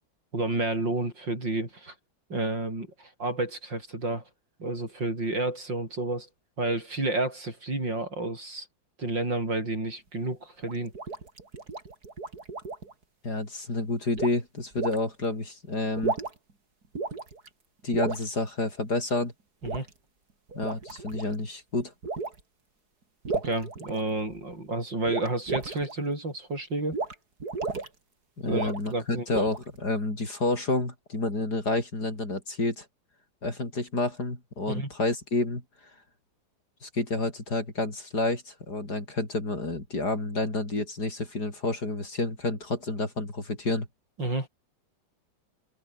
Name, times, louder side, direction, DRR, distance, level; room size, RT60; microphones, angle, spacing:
voice 1, 0.3-1.9 2.3-4.2 4.6-6.3 6.6-8.7 9.0-10.9 19.6-19.9 23.4-27.0 28.5-29.3 34.7-34.9 44.2-44.5, right 2 dB, 70° right, 8.8 m, -30 dB
sound 1, 10.6-12.9 14.2-14.4 14.8-15.0 15.9-16.5 16.9-17.5 17.9-18.2 19.6-19.9 20.5-21.3 22.0-22.4 23.2-24.4 25.1-25.9 26.9-27.1 27.4-27.9 28.5-28.9 29.3-29.8, right 3 dB, 55° right, 4.0 m, -33 dB
voice 2, 13.2-16.2 17.8-19.3 20.5-21.9 28.4-32.9 33.4-35.6 36.8-43.9, left 2 dB, 55° left, 6.4 m, -29 dB
omnidirectional pair, 2.0 m